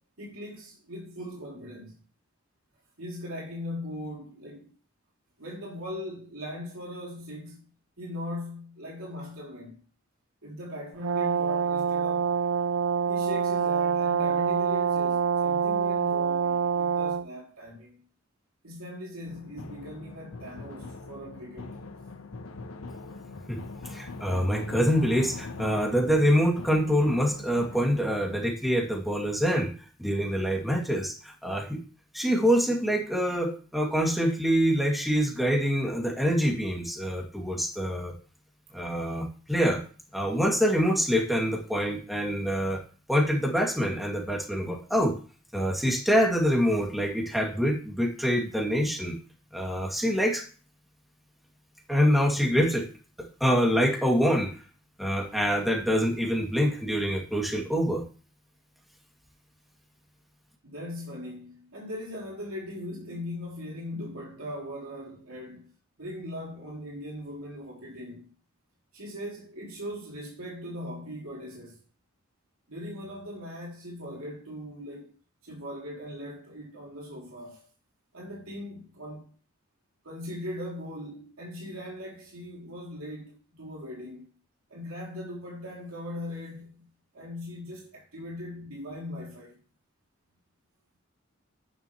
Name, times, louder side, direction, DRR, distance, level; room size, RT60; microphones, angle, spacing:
voice 1, 0.0-1.9 3.0-4.7 5.4-7.7 8.0-9.8 10.4-12.3 13.1-18.0 18.6-21.8 60.6-65.7 66.0-68.3 68.9-71.8 72.7-75.1 75.4-77.7 78.1-79.3 80.0-84.3 84.7-86.8 87.1-89.6, left 1 dB, 90° right, 2.8 m, -39 dB
Brass instrument, 11.0-17.3, right 7 dB, 65° right, 0.5 m, -26 dB
sound 1, 19.3-28.4, left 3 dB, 85° left, 1.1 m, -42 dB
voice 2, 23.9-29.7 30.0-31.8 32.1-38.1 38.7-39.8 40.1-42.8 43.1-45.1 45.5-49.2 49.5-50.4 51.9-52.9 53.4-54.5 55.0-58.0, equal, ahead, 2.3 m, -25 dB
11.0 x 10.0 x 3.1 m
head